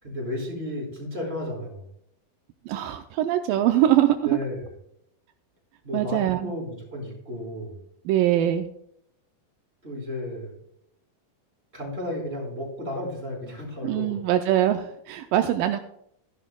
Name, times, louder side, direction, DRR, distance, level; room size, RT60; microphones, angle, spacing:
voice 1, 0.0-1.9 4.2-4.6 5.8-7.8 9.8-10.5 11.7-14.1, left 1 dB, 15° right, -2 dB, 4.5 m, -33 dB
voice 2, 2.7-4.4 5.9-6.5 8.1-8.7 13.8-15.8, right 12 dB, 80° right, 7 dB, 2.2 m, -22 dB
16.0 x 11.0 x 2.3 m, 0.74 s
omnidirectional pair, 4.3 m